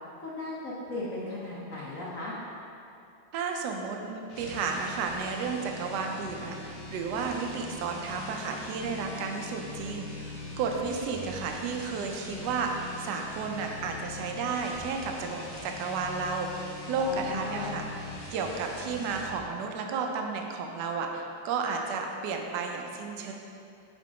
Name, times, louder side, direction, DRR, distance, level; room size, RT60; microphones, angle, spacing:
voice 1, 0.2-2.3 17.0-17.8, left 2 dB, 65° left, -7 dB, 0.8 m, -36 dB
voice 2, 3.3-17.8 18.3-23.3, right 5 dB, 75° right, 2 dB, 1.0 m, -33 dB
sound 1, 4.2-19.4, left 2 dB, 40° left, 1.2 m, -42 dB
5.3 x 3.7 x 4.9 m, 2.6 s
omnidirectional pair, 2.3 m